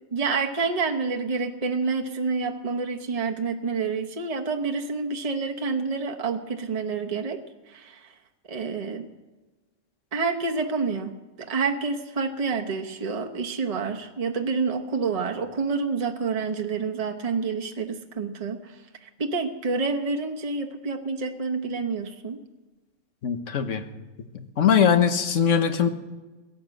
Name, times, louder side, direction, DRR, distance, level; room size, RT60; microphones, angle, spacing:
voice 1, 0.1-7.4 7.7-8.1 8.5-9.1 10.1-11.1 11.4-22.4, right 4 dB, 30° right, 3 dB, 1.0 m, -28 dB
voice 2, 23.2-23.8 24.3-25.9, left 7 dB, 65° left, 8 dB, 1.4 m, -21 dB
17.0 x 11.0 x 7.7 m, 1.2 s
omnidirectional pair, 1.4 m